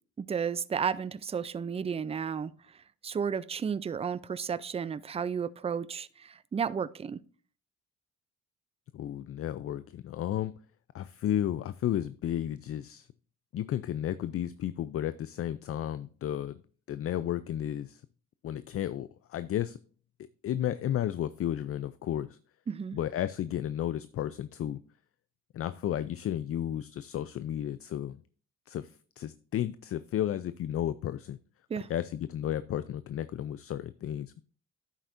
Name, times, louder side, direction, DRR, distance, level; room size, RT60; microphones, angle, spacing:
voice 1, 0.2-2.5 3.0-7.2 22.7-23.0 31.7-31.9, right 6 dB, 20° right, 0.4 m, -33 dB
voice 2, 8.9-10.5 10.9-13.1 13.5-16.6 16.9-18.0 18.4-19.8 20.2-22.4 22.9-24.8 25.5-28.2 28.7-31.4 31.9-34.4, left 11 dB, 50° left, 0.4 m, -33 dB
10.0 x 8.2 x 2.6 m
cardioid pair, 90°, 30 cm